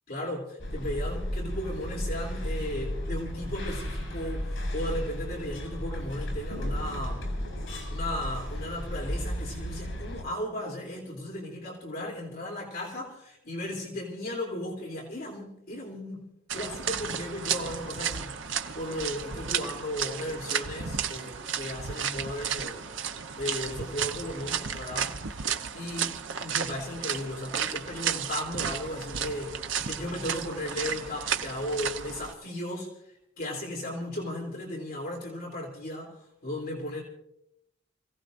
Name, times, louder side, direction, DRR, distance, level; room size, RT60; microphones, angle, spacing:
voice 1, 0.1-7.3 7.9-16.2 16.5-18.3 18.7-32.9 33.4-36.2 36.4-37.0, left 1 dB, 45° left, -2 dB, 3.2 m, -36 dB
sound 1, 0.6-10.2, equal, 80° left, 6.4 m, -34 dB
sound 2, 16.5-32.3, right 7 dB, 75° right, 0.9 m, -33 dB
29.0 x 16.5 x 2.6 m, 0.76 s
head